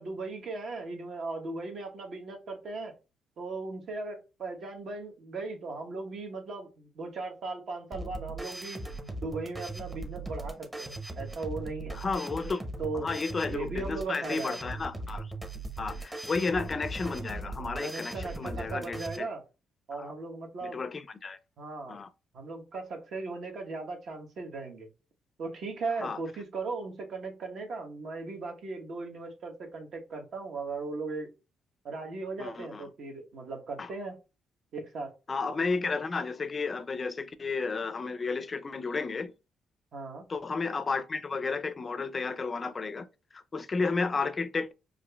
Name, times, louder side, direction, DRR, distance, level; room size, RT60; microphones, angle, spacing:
voice 1, 0.0-2.9 3.4-8.8 9.2-12.0 12.8-13.1 13.5-14.6 17.8-19.4 19.9-20.8 21.6-22.0 22.3-24.9 25.4-31.3 31.8-34.2 34.7-35.1 39.9-40.3, right 3 dB, 60° right, 1.0 m, -37 dB
sound 1, 7.9-19.2, right 2 dB, 15° right, 0.8 m, -39 dB
voice 2, 11.9-12.6 13.0-15.3 15.8-19.3 19.9-20.1 20.6-21.4 21.9-22.1 26.0-26.2 32.4-32.9 33.8-33.9 35.3-39.3 40.3-43.1 43.3-44.7, left 4 dB, 35° left, 0.4 m, -32 dB
5.0 x 2.5 x 2.2 m
cardioid pair, 90°, 0 cm